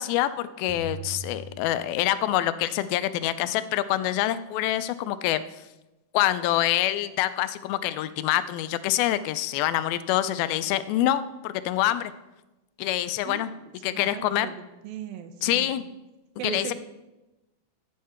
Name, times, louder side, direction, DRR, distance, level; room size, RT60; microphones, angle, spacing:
voice 1, 0.0-5.4 6.1-12.1 12.8-13.5 13.8-14.5 15.4-15.8 16.4-16.7, left 13 dB, 85° left, 13 dB, 2.4 m, -26 dB
sound 1, 0.7-2.5, right 3 dB, 60° right, 3.3 m, -40 dB
voice 2, 13.9-15.7 16.4-16.7, right 8 dB, 80° right, 8 dB, 2.7 m, -38 dB
14.5 x 8.6 x 4.4 m, 1.0 s
omnidirectional pair, 4.2 m